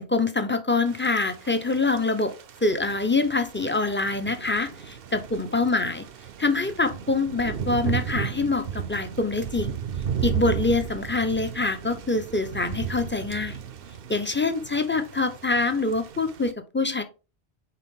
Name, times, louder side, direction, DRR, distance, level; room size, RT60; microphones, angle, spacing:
voice 1, 0.0-2.3 2.6-6.1 6.4-9.8 10.2-13.6 14.1-17.0, left 3 dB, 15° left, 8 dB, 0.6 m, -25 dB
Thunder / Rain, 0.9-16.5, right 8 dB, 65° right, 0.8 m, -35 dB
6.7 x 4.6 x 3.6 m, 0.31 s
omnidirectional pair, 1.1 m